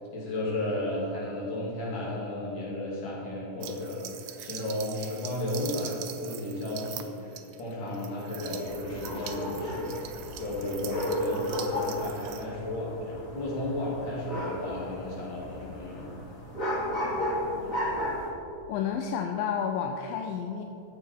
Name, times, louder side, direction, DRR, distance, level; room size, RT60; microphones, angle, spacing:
voice 1, 0.1-16.1, left 1 dB, 65° left, -6 dB, 4.4 m, -34 dB
sound 1, 3.6-12.4, right 10 dB, 75° right, 1.7 m, -43 dB
sound 2, 8.7-18.3, left 1 dB, 30° left, 2.1 m, -34 dB
voice 2, 18.7-20.6, left 7 dB, 85° left, 4 dB, 2.4 m, -30 dB
14.0 x 8.6 x 4.7 m, 2.7 s
omnidirectional pair, 4.0 m